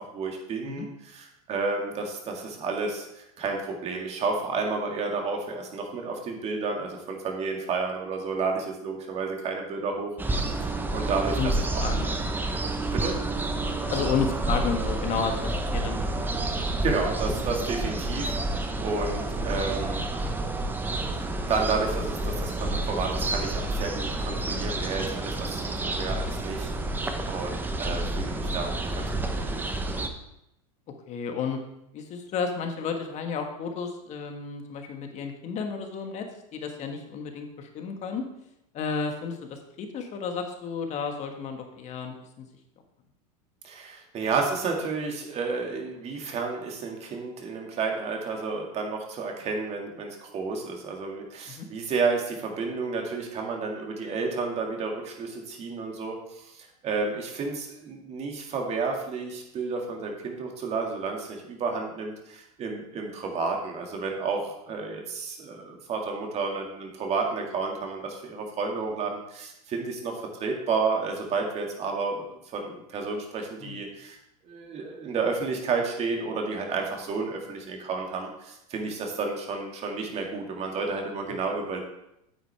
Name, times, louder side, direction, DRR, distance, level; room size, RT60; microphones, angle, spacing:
voice 1, 0.0-10.1 10.9-11.8 12.9-13.2 16.8-20.1 21.2-29.6 43.6-74.2 74.4-81.8, right 4 dB, 35° right, 1 dB, 2.1 m, -31 dB
sound 1, 10.2-30.1, right 2 dB, 10° right, 0.8 m, -29 dB
voice 2, 11.8-12.1 12.5-12.6 13.9-16.1 16.3-16.5 17.4-17.5 31.1-31.6 31.9-36.3 36.5-38.2 38.7-42.5 51.5-51.6 73.6-73.8, left 5 dB, 35° left, 4 dB, 1.5 m, -32 dB
9.2 x 8.0 x 3.4 m, 0.83 s
hypercardioid pair, 120°, 20 cm